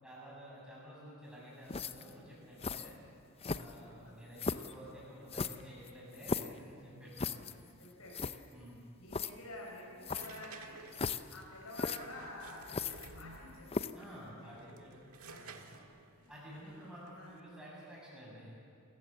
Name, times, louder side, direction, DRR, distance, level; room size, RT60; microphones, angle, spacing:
voice 1, 0.0-3.0 3.5-7.4 8.5-8.8 13.9-15.0 15.4-15.6 16.3-18.5, equal, 5° right, -5 dB, 7.7 m, -51 dB
sound 1, 1.7-2.1 2.6-2.9 3.4-3.9 4.4-4.7 5.3-6.6 7.2-7.5 7.9-8.0 8.1-8.4 9.1-9.3 10.0-10.4 10.9-11.4 11.7-12.0 12.7-13.4 13.7-14.0, left 4 dB, 25° left, 0.5 m, -37 dB
voice 2, 7.8-8.6 9.0-10.8 11.3-13.7 14.2-14.9 15.3-15.8 16.2-16.6 17.2-17.3, left 1 dB, 75° left, -4 dB, 5.4 m, -50 dB
sound 2, 10.0-13.7 14.4-17.4, right 3 dB, 85° right, 1.6 m, -53 dB
28.5 x 15.0 x 8.2 m, 2.5 s
head